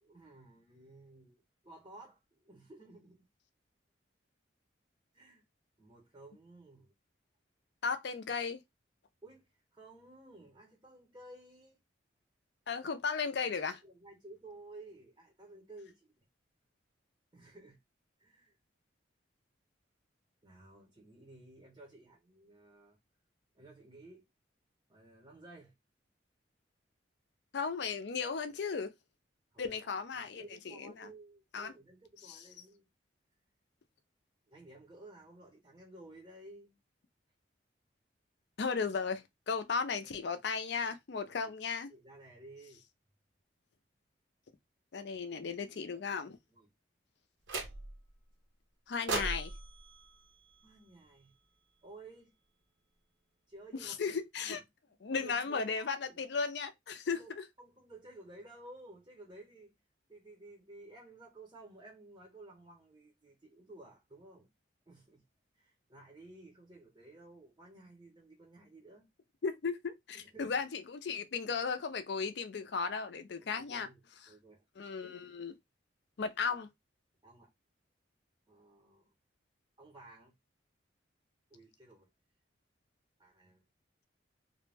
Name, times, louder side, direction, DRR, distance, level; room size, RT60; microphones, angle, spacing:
voice 1, 0.0-3.3 5.1-5.4 5.8-6.9 9.2-11.8 13.8-16.1 17.3-17.8 18.2-18.6 20.4-23.0 23.5-24.3 24.9-25.7 29.5-32.8 34.5-36.8 40.0-40.3 41.1-41.5 41.9-42.8 46.5-46.7 50.6-51.3 51.8-52.3 53.5-54.6 54.9-56.2 57.0-57.3 57.6-59.7 60.1-64.5 64.9-65.2 65.6-69.1 70.1-70.5 73.4-74.0 74.3-74.6 77.2-77.5 78.5-79.1 79.8-80.3 81.5-82.1 83.2-83.6, right 2 dB, 20° right, 0.6 m, -55 dB
voice 2, 7.8-8.6 12.7-13.8 27.5-28.9 29.6-31.1 31.5-31.7 32.2-32.4 38.6-41.9 44.9-46.4 48.9-49.5 53.8-54.6 55.0-57.4 69.4-73.9 74.2-74.3 74.8-75.6 76.2-76.7, left 5 dB, 65° left, 0.4 m, -36 dB
sound 1, 47.5-48.1 49.1-51.3, right 3 dB, 75° right, 0.7 m, -40 dB
2.5 x 2.1 x 3.2 m
head